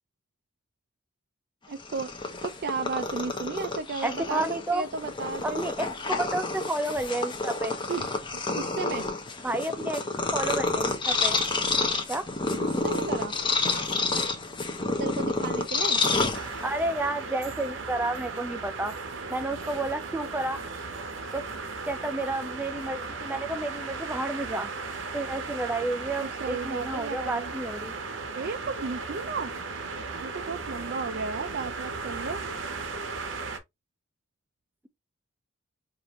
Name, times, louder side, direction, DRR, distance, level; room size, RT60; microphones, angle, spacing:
Purr, 1.7-16.9, left 3 dB, 25° left, 0.8 m, -29 dB
voice 1, 1.7-2.1 2.4-4.4 4.7-5.6 7.9-9.1 12.5-13.4 15.0-16.0 26.2-27.5 28.3-29.5 30.2-32.5, right 4 dB, 55° right, 0.4 m, -34 dB
voice 2, 4.0-4.8 5.4-7.7 9.4-11.4 12.1-12.3 16.6-18.9 19.3-20.6 21.3-21.4 21.9-24.7 25.1-27.9, right 2 dB, 10° right, 0.5 m, -31 dB
sound 1, 16.3-33.6, right 4 dB, 70° right, 0.9 m, -36 dB
5.0 x 2.6 x 2.9 m
head